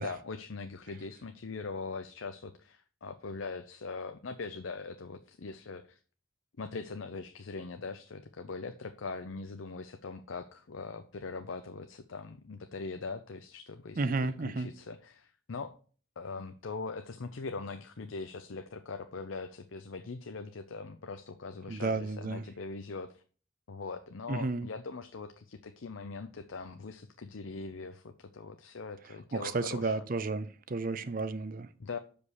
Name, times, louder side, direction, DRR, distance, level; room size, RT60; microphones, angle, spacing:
voice 1, 0.0-6.0 6.6-15.8 16.2-23.2 23.7-30.1 31.8-32.0, left 4 dB, 70° left, 8 dB, 0.6 m, -41 dB
voice 2, 14.0-14.7 21.7-22.4 24.3-24.7 29.3-31.7, right 3 dB, 40° right, 13 dB, 0.5 m, -32 dB
7.0 x 5.2 x 6.3 m, 0.41 s
head